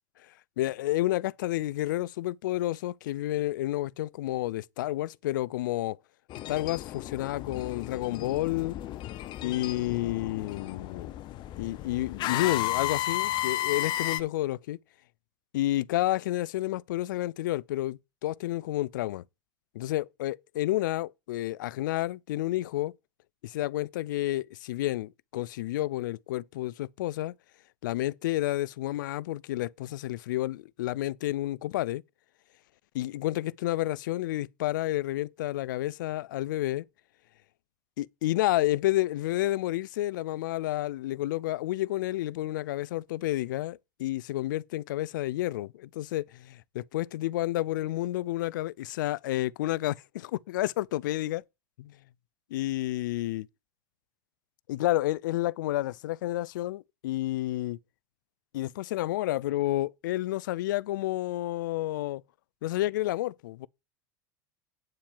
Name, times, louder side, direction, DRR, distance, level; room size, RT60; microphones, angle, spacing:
voice 1, 0.3-6.0 6.5-8.8 9.4-11.1 11.6-14.8 15.5-19.2 19.7-22.9 23.4-27.3 27.8-32.0 32.9-36.8 38.0-51.4 51.8-52.0 52.5-53.5 54.7-57.8 58.5-62.2 62.6-63.7, left 16 dB, 75° left, 0.4 m, -30 dB
sound 1, 6.3-14.2, left 14 dB, 45° left, 0.7 m, -33 dB
8.9 x 4.4 x 7.2 m
hypercardioid pair, 90°, 11 cm